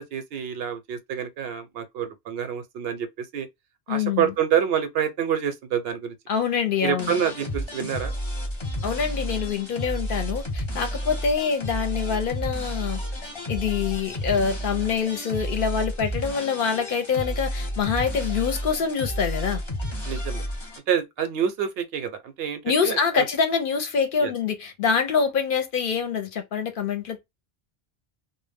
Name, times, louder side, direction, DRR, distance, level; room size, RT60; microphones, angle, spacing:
voice 1, 0.0-3.5 3.9-6.1 6.8-8.1 20.0-20.4 20.9-23.2 24.2-24.3, right 8 dB, 70° right, 0.8 m, -27 dB
voice 2, 3.9-4.3 6.3-7.2 8.8-13.0 13.5-19.6 22.6-27.3, left 6 dB, 60° left, 0.7 m, -25 dB
sound 1, 7.0-20.8, equal, 30° left, 0.7 m, -31 dB
2.1 x 2.0 x 3.2 m
omnidirectional pair, 1.1 m